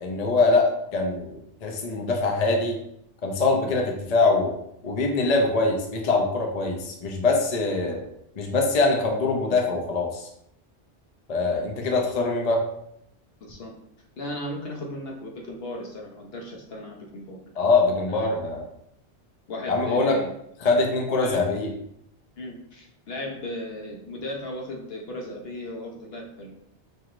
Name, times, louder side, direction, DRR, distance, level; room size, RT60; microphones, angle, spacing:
voice 1, 0.0-2.8 3.2-4.5 4.8-8.0 8.4-10.3 11.3-12.6 17.6-18.6 19.7-20.2 20.6-21.7, left 3 dB, 45° left, 1 dB, 0.6 m, -23 dB
voice 2, 13.4-13.7 14.2-17.4 18.1-18.5 19.5-20.3 21.1-21.4 22.4-26.5, left 1 dB, 60° left, 0 dB, 1.0 m, -36 dB
4.5 x 3.0 x 2.5 m, 0.76 s
omnidirectional pair, 1.2 m